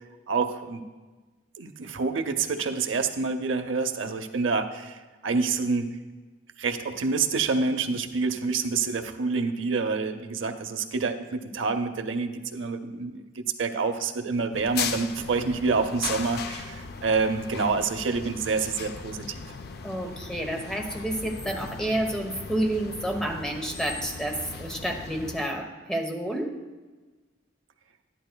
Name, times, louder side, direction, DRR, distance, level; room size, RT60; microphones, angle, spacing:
voice 1, 0.3-0.8 1.6-5.0 5.2-5.9 6.6-19.4, right 4 dB, 85° right, 7 dB, 0.6 m, -27 dB
sound 1, 14.5-25.5, left 5 dB, 55° left, 0.5 m, -38 dB
voice 2, 19.8-26.5, right 1 dB, 5° left, 2 dB, 0.9 m, -30 dB
11.5 x 10.5 x 2.2 m, 1.3 s
head